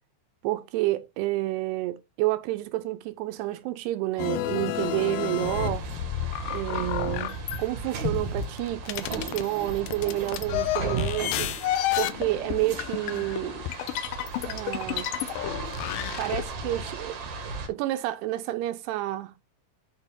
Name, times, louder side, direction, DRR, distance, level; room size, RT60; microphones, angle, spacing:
voice 1, 0.4-5.9 6.5-13.6 14.4-15.1 16.2-19.4, right 16 dB, 80° right, 2.8 m, -30 dB
sound 1, 4.2-7.6 8.1-16.4, left 13 dB, 80° left, 2.1 m, -31 dB
sound 2, 4.7-17.7, right 2 dB, 60° right, 1.7 m, -36 dB
10.5 x 4.4 x 3.6 m
omnidirectional pair, 4.8 m